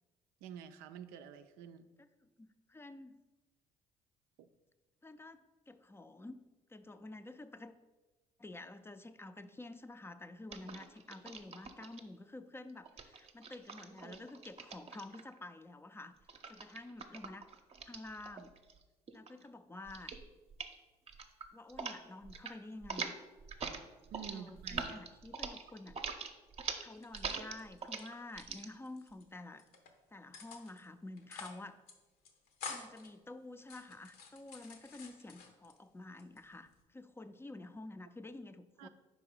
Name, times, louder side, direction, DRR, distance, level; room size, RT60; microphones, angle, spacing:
voice 1, 0.4-1.9 4.4-4.5 24.1-25.0 38.8-38.9, right 9 dB, 90° right, 9 dB, 0.4 m, -49 dB
voice 2, 2.2-3.1 5.0-6.4 6.7-7.7 8.4-16.2 16.5-17.5 17.9-18.5 19.1-20.2 21.5-23.1 24.3-26.2 26.8-29.6 30.1-31.8 32.6-38.9, left 2 dB, 15° left, 11 dB, 0.4 m, -50 dB
sound 1, 10.5-12.0 12.8-15.4 16.3-18.8 19.1-19.5 19.9-20.2 20.5-20.8 21.1-22.0 22.2-22.5 22.8-28.7, right 5 dB, 40° right, 0.6 m, -43 dB
sound 2, 27.0-28.0 28.3-29.2 29.6-29.9 30.3-30.9 31.2-31.6 31.9-32.0 32.3-33.1 33.6-35.8 36.2-36.8, left 5 dB, 80° left, 0.9 m, -49 dB
4.7 x 3.9 x 5.3 m, 1.2 s
supercardioid pair, 70°, 15 cm